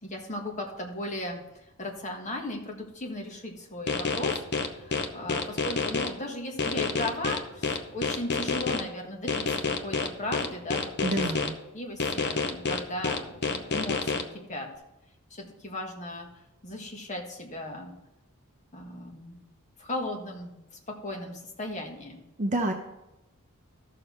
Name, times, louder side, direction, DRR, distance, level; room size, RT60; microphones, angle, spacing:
voice 1, 0.0-11.3 11.7-14.7 15.3-16.3 16.6-17.9 18.7-19.5 19.8-22.2, left 1 dB, 35° left, 0 dB, 1.5 m, -37 dB
sound 1, 3.9-6.1 6.6-8.8 9.3-11.5 12.0-14.2, left 4 dB, 50° left, 0.8 m, -28 dB
voice 2, 11.0-11.5 22.4-22.7, right 1 dB, 35° right, 3 dB, 0.7 m, -27 dB
13.5 x 6.6 x 4.3 m, 0.92 s
head